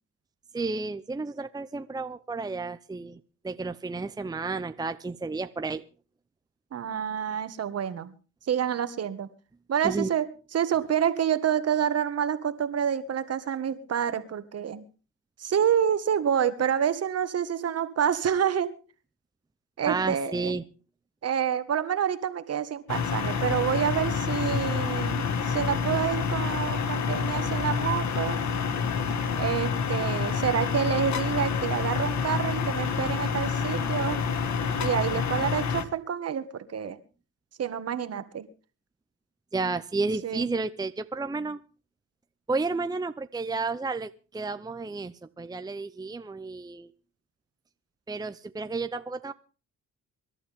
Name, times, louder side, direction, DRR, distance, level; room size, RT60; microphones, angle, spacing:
voice 1, 0.5-5.8 9.8-10.1 19.9-20.6 39.5-41.6 42.5-46.9 48.1-49.3, right 3 dB, 15° right, 10 dB, 0.7 m, -32 dB
voice 2, 6.7-8.1 8.5-9.3 9.7-10.3 10.5-14.8 15.4-18.7 19.8-20.6 21.2-28.4 29.4-34.2 34.8-37.0 37.6-38.5 40.2-40.5, right 8 dB, 55° right, 12 dB, 1.8 m, -28 dB
sound 1, 22.9-35.8, left 6 dB, 65° left, 1.8 m, -28 dB
25.5 x 12.0 x 3.7 m, 0.36 s
cardioid pair, 90°, 30 cm